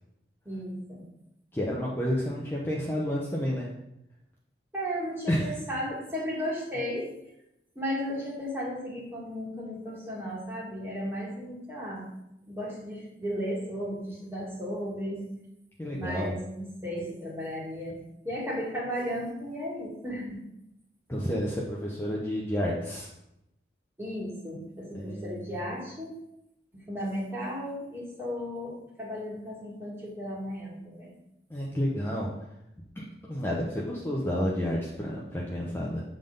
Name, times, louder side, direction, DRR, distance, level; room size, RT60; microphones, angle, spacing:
voice 1, 0.5-1.0 4.7-7.1 7.8-12.1 12.5-15.2 15.9-18.0 18.2-20.4 24.0-26.1 26.7-31.1, equal, 15° right, -5 dB, 2.1 m, -35 dB
voice 2, 1.5-3.7 5.3-5.5 15.8-16.4 21.1-23.1 24.9-25.4 31.5-32.3 33.0-33.1 33.3-36.0, equal, 15° left, -5 dB, 0.8 m, -30 dB
7.5 x 3.8 x 5.3 m, 0.84 s
head